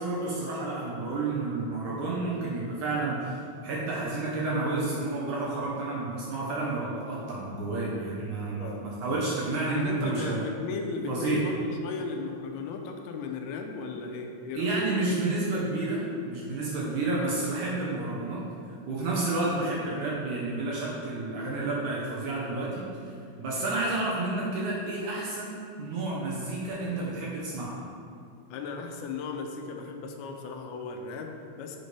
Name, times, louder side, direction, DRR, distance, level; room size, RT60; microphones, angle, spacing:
voice 1, 0.0-10.5 11.1-11.4 14.5-18.4 18.9-27.8, right 2 dB, 65° right, -5 dB, 2.1 m, -30 dB
voice 2, 8.6-8.9 9.7-14.8 28.5-31.8, left 4 dB, 80° left, 3 dB, 2.5 m, -36 dB
9.5 x 6.6 x 3.4 m, 2.4 s
omnidirectional pair, 4.4 m